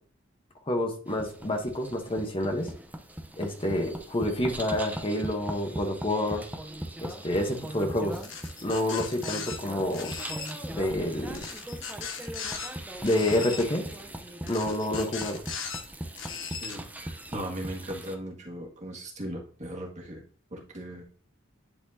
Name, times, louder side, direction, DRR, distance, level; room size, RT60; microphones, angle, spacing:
voice 1, 0.7-2.7 3.4-6.5 7.0-8.2 8.6-10.1 10.7-11.4 13.0-13.8 14.5-15.4, left 1 dB, 25° left, 3 dB, 1.0 m, -28 dB
sound 1, 1.1-18.2, right 1 dB, 10° right, 0.7 m, -40 dB
sound 2, 8.2-9.6 9.9-10.5 11.3-12.7 13.0-13.7 14.5-15.8 16.2-16.8, left 6 dB, 65° left, 1.3 m, -38 dB
voice 2, 16.4-20.2 20.5-21.0, right 1 dB, 35° right, 0 dB, 1.8 m, -38 dB
10.0 x 4.3 x 2.8 m, 0.44 s
head